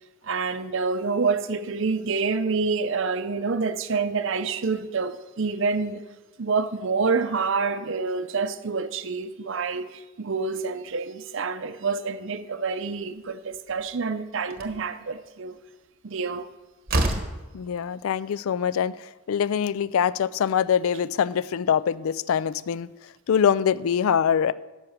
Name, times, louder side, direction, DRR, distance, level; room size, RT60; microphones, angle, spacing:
voice 1, 0.2-6.0 6.4-15.6 16.0-16.5, right 4 dB, 55° right, 0.6 m, -27 dB
Slam, 14.5-14.8 16.4-16.5 16.9-17.4, right 2 dB, 40° right, 1.1 m, -26 dB
voice 2, 17.5-22.9 23.3-24.5, left 8 dB, 70° left, 0.3 m, -24 dB
10.5 x 6.3 x 6.5 m
head